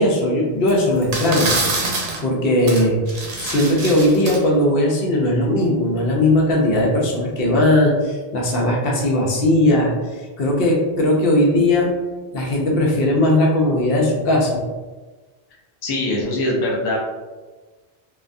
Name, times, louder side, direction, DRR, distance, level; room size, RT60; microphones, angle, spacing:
voice 1, 0.0-1.5 2.2-3.0 3.4-12.0 12.3-14.6, left 1 dB, 70° left, -2 dB, 0.8 m, -18 dB
sound 1, 0.7-0.8 1.0-2.2 2.7-2.8 3.1-4.4, right 3 dB, 65° right, 0.7 m, -25 dB
voice 2, 15.8-17.0, left 1 dB, 40° left, -3 dB, 0.3 m, -22 dB
2.3 x 2.2 x 2.5 m, 1.3 s
omnidirectional pair, 1.0 m